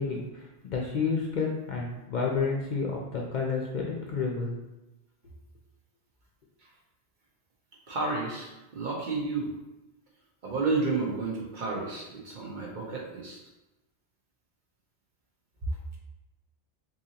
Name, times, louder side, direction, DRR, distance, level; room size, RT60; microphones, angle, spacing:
voice 1, 0.0-4.5, left 4 dB, 55° left, -2 dB, 0.6 m, -30 dB
voice 2, 7.9-9.5 10.4-13.4, right 3 dB, 50° right, -3 dB, 0.8 m, -31 dB
3.8 x 2.8 x 2.8 m, 1.0 s
omnidirectional pair, 1.1 m